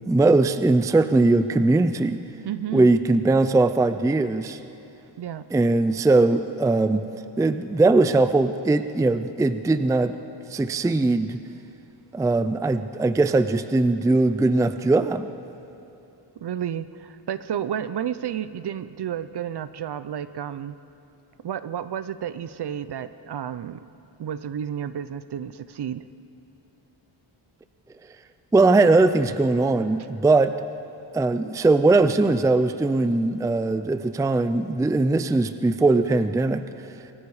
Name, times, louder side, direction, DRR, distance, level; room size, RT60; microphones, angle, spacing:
voice 1, 0.0-2.2 2.7-4.6 5.5-7.1 7.4-10.2 10.5-11.4 12.1-15.3 28.5-30.5 31.1-36.7, right 2 dB, 5° right, 11 dB, 0.4 m, -20 dB
voice 2, 2.4-2.9 5.2-5.5 16.4-20.8 21.4-23.8 24.2-26.1, right 9 dB, 55° right, 14 dB, 0.7 m, -31 dB
29.0 x 23.5 x 4.9 m, 2.8 s
wide cardioid pair, 150°, 48 cm